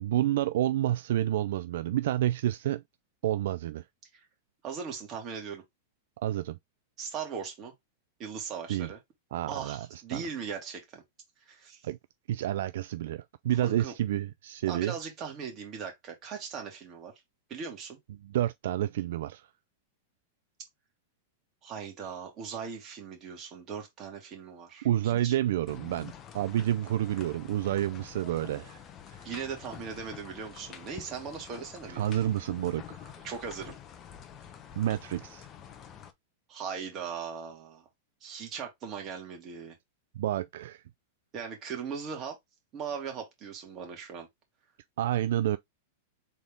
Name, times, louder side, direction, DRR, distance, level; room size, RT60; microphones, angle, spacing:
voice 1, 0.0-2.8 3.2-3.8 6.2-6.6 8.7-8.9 9.3-10.2 11.8-12.0 12.3-14.9 18.2-19.5 24.8-29.3 31.9-33.1 34.8-35.5 40.2-40.8 45.0-45.6, right 12 dB, 70° right, 0.3 m, -29 dB
voice 2, 4.6-5.6 7.0-7.7 8.2-9.0 9.5-11.0 11.5-11.8 13.6-13.9 14.7-17.1 17.5-18.0 21.6-25.4 29.2-32.1 33.2-33.8 36.5-37.8 38.2-39.8 41.3-42.4 42.7-44.3, right 6 dB, 30° right, 2.1 m, -39 dB
sound 1, 25.7-36.1, left 9 dB, 25° left, 0.8 m, -47 dB
3.9 x 3.5 x 3.6 m
supercardioid pair, 140°, 0 cm